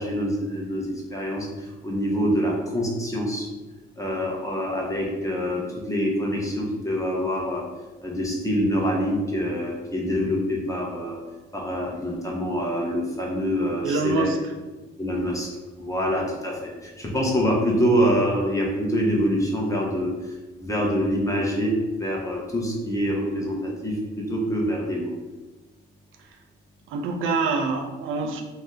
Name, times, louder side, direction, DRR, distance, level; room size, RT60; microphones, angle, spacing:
voice 1, 0.0-3.5 4.0-7.6 8.0-11.2 11.5-14.3 15.0-15.5 15.8-20.1 20.6-25.1, equal, 15° left, -2 dB, 0.8 m, -25 dB
voice 2, 13.8-14.4 26.9-28.4, right 4 dB, 85° right, 3 dB, 0.4 m, -25 dB
2.6 x 2.1 x 3.5 m, 1.2 s
cardioid pair, 90°, 20 cm